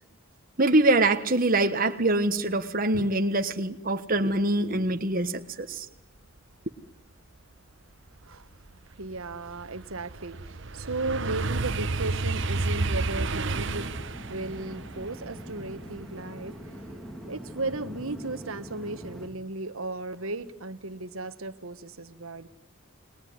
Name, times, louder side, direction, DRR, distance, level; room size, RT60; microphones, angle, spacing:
voice 1, 0.6-5.8, right 2 dB, 45° right, 7 dB, 1.4 m, -24 dB
sound 1, 7.5-7.6 8.1-17.1 17.5-17.9, right 3 dB, 60° right, 1.2 m, -32 dB
voice 2, 8.9-13.9 14.3-16.8 17.3-22.5, right 2 dB, 80° right, 11 dB, 1.5 m, -35 dB
sound 2, 12.4-19.3, equal, ahead, 2.9 m, -43 dB
29.5 x 20.5 x 9.7 m, 0.75 s
head